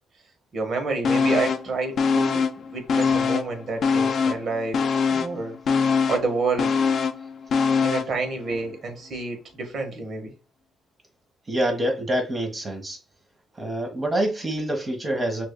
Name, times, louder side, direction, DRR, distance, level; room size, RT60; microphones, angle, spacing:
voice 1, 0.5-4.8 5.1-5.6 6.1-6.7 7.8-10.3, right 3 dB, 60° right, 1.3 m, -29 dB
sound 1, 1.0-1.7 2.0-3.5 3.8-8.2 8.5-8.6, left 5 dB, 60° left, 0.5 m, -23 dB
voice 2, 11.5-13.0 13.5-15.5, right 1 dB, 30° right, 1.2 m, -26 dB
6.0 x 2.5 x 2.2 m
cardioid pair, 90°, 0 cm